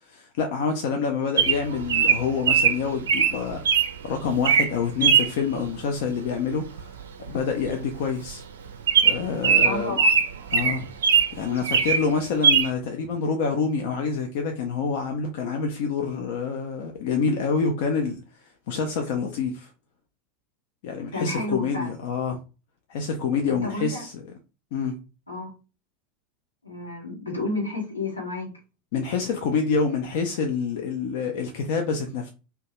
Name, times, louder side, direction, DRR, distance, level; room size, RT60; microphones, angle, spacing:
voice 1, 0.0-6.9 7.3-8.4 9.0-10.0 10.5-10.9 11.3-19.7 20.8-22.4 22.9-24.2 24.7-25.0 28.9-32.3, left 5 dB, 60° left, 0.4 m, -27 dB
Bird vocalization bird call bird song, 1.4-3.9 4.3-4.7 5.0-5.3 6.8-7.0 7.3-7.4 7.6-7.8 8.3-8.4 8.9-11.3 11.6-12.0 12.4-12.7, right 6 dB, 75° right, 0.4 m, -20 dB
voice 2, 9.6-10.1 21.1-21.9 23.5-24.0 25.3-25.5 26.6-28.5, left 2 dB, 90° left, 0.9 m, -31 dB
2.6 x 2.2 x 2.8 m
figure-of-eight pair, 80°, 0 cm